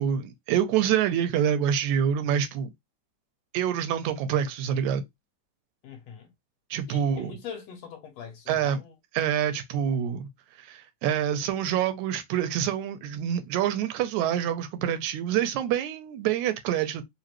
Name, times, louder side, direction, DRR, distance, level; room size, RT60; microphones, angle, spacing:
voice 1, 0.0-2.7 3.5-5.0 6.7-7.3 8.5-8.8 9.1-10.3 10.6-17.0, right 9 dB, 90° right, 2.0 m, -26 dB
voice 2, 5.8-6.3 6.9-8.9, left 7 dB, 70° left, 2.0 m, -42 dB
5.0 x 2.6 x 3.0 m
omnidirectional pair, 3.3 m